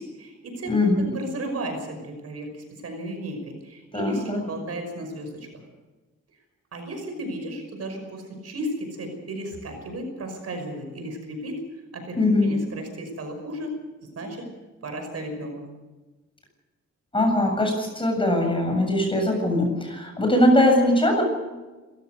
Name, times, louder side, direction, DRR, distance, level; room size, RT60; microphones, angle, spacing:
voice 1, 0.0-0.7 1.0-5.5 6.7-11.6 11.9-13.7 14.2-14.5 14.8-15.7, right 1 dB, 55° right, 5 dB, 5.7 m, -34 dB
voice 2, 0.6-1.1 3.9-4.4 12.2-12.6 17.1-21.2, left 1 dB, 15° left, 2 dB, 7.6 m, -21 dB
26.0 x 15.5 x 6.6 m, 1.2 s
cardioid pair, 125°, 29 cm